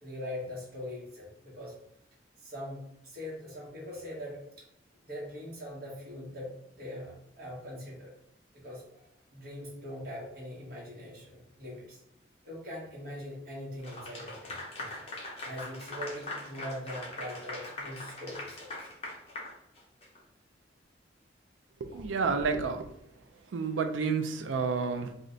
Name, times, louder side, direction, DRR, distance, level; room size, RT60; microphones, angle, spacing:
voice 1, 0.0-1.7 2.4-4.7 5.0-8.1 8.6-12.0 12.4-14.9 15.4-18.7, left 1 dB, 55° right, -4 dB, 1.1 m, -42 dB
Clapping / Applause, 13.8-20.2, left 2 dB, 30° left, 0.6 m, -41 dB
voice 2, 21.8-22.9 23.5-25.1, right 5 dB, 90° right, 7 dB, 0.4 m, -30 dB
2.5 x 2.1 x 3.8 m, 0.78 s
head